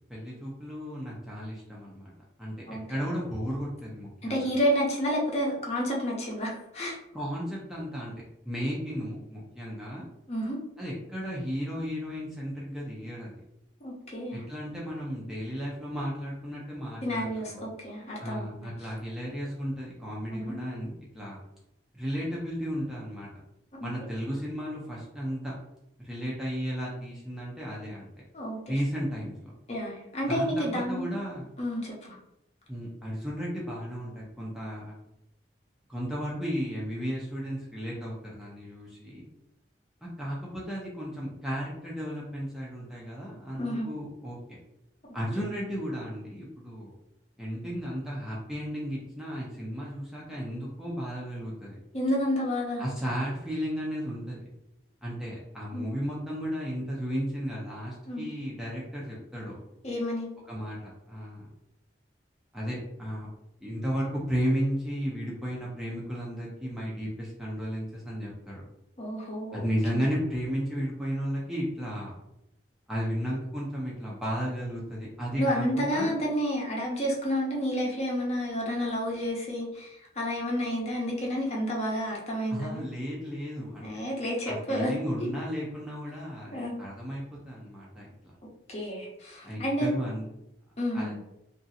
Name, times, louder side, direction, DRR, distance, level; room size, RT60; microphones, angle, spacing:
voice 1, 0.1-2.1 2.4-4.5 7.1-10.1 10.8-13.3 14.3-17.2 17.5-17.7 18.2-21.4 21.9-23.3 23.8-25.6 26.0-28.1 28.7-29.5 30.3-31.5 32.7-35.0 35.9-39.2 40.0-44.6 45.1-46.9 47.4-51.8 52.8-54.5 55.0-59.6 60.5-61.5 62.5-63.3 63.6-68.6 69.5-72.2 72.9-76.1 82.5-83.9 84.5-88.1 89.4-90.3 90.9-91.1, equal, ahead, -5 dB, 0.5 m, -34 dB
voice 2, 4.2-7.0 10.3-10.6 13.8-14.4 17.0-18.7 20.3-20.5 23.8-23.9 28.3-28.6 29.7-31.1 31.6-32.2 43.5-43.9 45.4-45.5 51.9-52.8 55.7-55.9 58.1-58.3 59.8-60.3 69.0-69.6 69.9-70.0 75.4-82.8 83.8-84.9 86.5-86.7 88.7-89.9 90.8-91.2, equal, 35° left, -3 dB, 0.7 m, -30 dB
2.9 x 2.6 x 2.7 m, 0.83 s
head